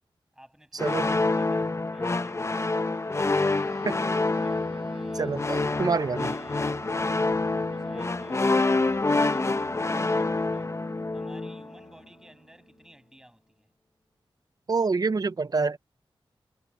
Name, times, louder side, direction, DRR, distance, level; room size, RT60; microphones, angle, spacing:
voice 1, 0.3-4.0 4.4-5.4 6.1-10.8 11.1-13.7, equal, 5° right, 7.2 m, -56 dB
sound 1, 0.8-11.7, left 3 dB, 30° left, 0.7 m, -27 dB
sound 2, 3.5-13.2, right 5 dB, 75° right, 2.3 m, -49 dB
voice 2, 5.2-6.3 14.7-15.8, right 4 dB, 45° right, 0.6 m, -26 dB
wide cardioid pair, 80°, 9 cm